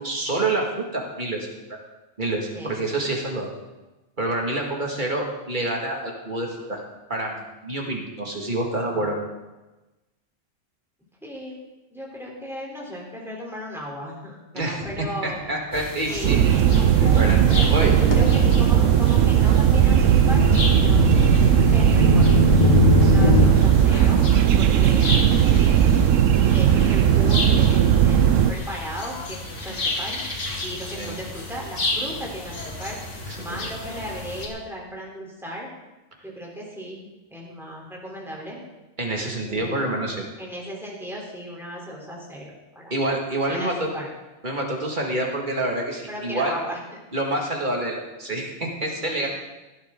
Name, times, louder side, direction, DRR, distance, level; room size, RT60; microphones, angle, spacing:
voice 1, 0.0-1.8 2.2-3.5 4.2-6.8 7.1-7.4 7.6-9.2 14.5-14.8 15.2-16.4 17.1-17.4 17.7-18.0 23.0-23.4 29.7-29.8 31.0-31.2 33.3-33.6 39.0-40.2 42.9-43.9 44.4-46.6 47.1-49.3, right 2 dB, 35° right, 0 dB, 2.2 m, -27 dB
voice 2, 11.2-11.6 11.9-15.4 16.1-16.4 17.5-20.5 20.8-22.4 23.0-24.2 24.6-25.2 25.6-25.8 26.5-30.2 30.6-33.0 33.3-35.7 36.2-38.6 39.5-40.0 40.4-42.9 43.5-44.1 44.8-45.0 46.1-46.8 49.2-49.3, equal, ahead, -4 dB, 3.5 m, -36 dB
sound 1, 14.8-15.1 15.7-23.5, left 4 dB, 35° left, 1.4 m, -24 dB
sound 2, 15.7-34.5, left 2 dB, 60° left, 2.0 m, -33 dB
sound 3, 16.2-28.5, right 9 dB, 70° right, 1.0 m, -17 dB
16.5 x 11.5 x 3.8 m, 1.1 s
omnidirectional pair, 1.4 m